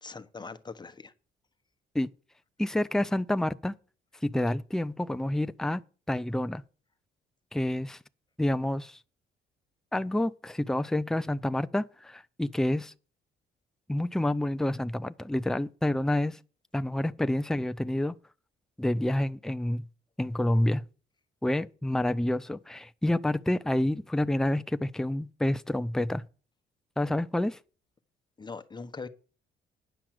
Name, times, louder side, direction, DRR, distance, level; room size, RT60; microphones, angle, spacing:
voice 1, 0.0-1.1 28.4-29.1, left 4 dB, 20° left, 1.1 m, -41 dB
voice 2, 2.6-3.7 4.2-5.8 6.1-6.6 7.5-8.0 8.4-9.0 9.9-12.9 13.9-16.4 16.7-18.1 18.8-19.8 20.2-20.8 21.4-26.2 27.0-27.6, left 1 dB, ahead, 0.5 m, -28 dB
10.5 x 5.9 x 7.7 m
cardioid pair, 90°, 20 cm